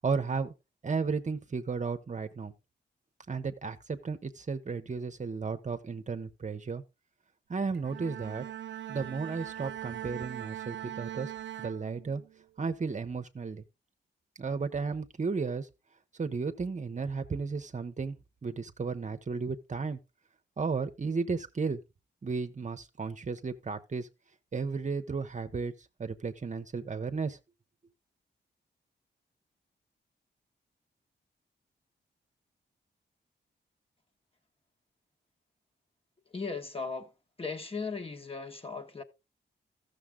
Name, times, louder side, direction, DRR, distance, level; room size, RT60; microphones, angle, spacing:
voice 1, 0.0-0.5 0.8-2.5 3.3-6.8 7.5-8.4 8.9-11.3 11.6-12.2 12.6-13.6 14.4-15.7 16.2-18.2 18.4-20.0 20.6-21.8 22.2-24.1 24.5-25.7 26.0-27.4, right 4 dB, 40° right, 0.8 m, -34 dB
Bowed string instrument, 7.7-12.4, right 12 dB, 70° right, 0.5 m, -41 dB
voice 2, 36.3-37.1 37.4-39.0, left 4 dB, 30° left, 1.4 m, -37 dB
14.0 x 6.8 x 3.6 m
cardioid pair, 75°, 19 cm